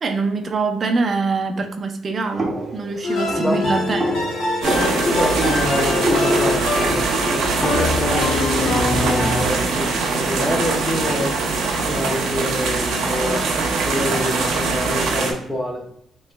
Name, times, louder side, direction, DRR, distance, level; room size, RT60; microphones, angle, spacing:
voice 1, 0.0-4.2, right 4 dB, 45° right, 5 dB, 0.5 m, -24 dB
sound 1, 2.4-8.1, right 1 dB, 25° right, 0.9 m, -28 dB
sound 2, 3.0-9.5, left 2 dB, 70° left, 0.9 m, -23 dB
sound 3, 4.6-15.3, right 4 dB, 80° right, 0.8 m, -22 dB
voice 2, 4.8-7.0 7.3-11.3 11.8-15.9, left 1 dB, 15° left, 1 dB, 0.9 m, -26 dB
3.7 x 3.1 x 2.2 m, 0.70 s
cardioid pair, 90°, 0 cm